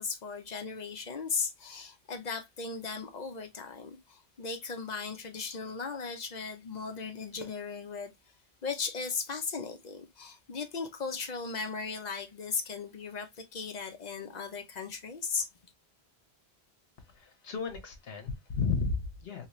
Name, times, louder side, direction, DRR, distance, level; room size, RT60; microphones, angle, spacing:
voice 1, 0.0-8.1 8.6-15.5, left 5 dB, 50° left, 0.6 m, -37 dB
voice 2, 17.0-19.5, left 4 dB, 70° left, 1.1 m, -33 dB
2.9 x 2.8 x 2.9 m
omnidirectional pair, 1.1 m